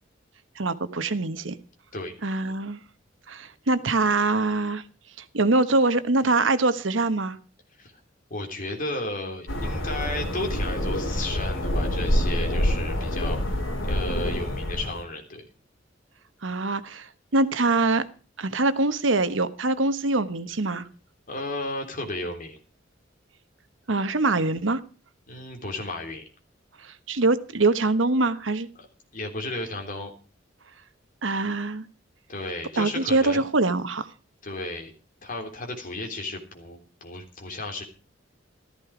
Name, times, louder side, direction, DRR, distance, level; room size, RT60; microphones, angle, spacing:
voice 1, 0.6-1.5 2.2-2.8 3.3-4.8 5.3-7.4 16.4-18.0 18.4-20.9 23.9-24.8 26.8-28.7 31.2-31.9 32.8-34.1, right 2 dB, 80° right, 12 dB, 1.2 m, -24 dB
voice 2, 8.3-15.5 21.3-22.6 25.3-26.2 28.8-28.9 29.1-30.1 32.3-33.4 34.4-34.9 35.2-37.8, left 2 dB, 45° left, 3 dB, 3.5 m, -34 dB
sound 1, 9.5-15.0, left 1 dB, 80° left, 3.2 m, -26 dB
14.5 x 14.0 x 5.0 m, 0.36 s
head